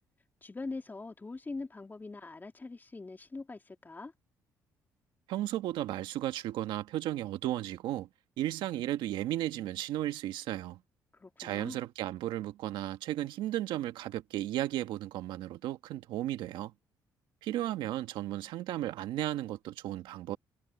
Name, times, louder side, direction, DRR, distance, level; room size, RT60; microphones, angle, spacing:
voice 1, 0.4-4.1 11.1-11.8, left 3 dB, 25° left, 3.6 m, -42 dB
voice 2, 5.3-8.1 8.4-10.8 11.4-16.7 17.4-20.4, right 14 dB, 85° right, 1.7 m, -34 dB
supercardioid pair, 75°, 8 cm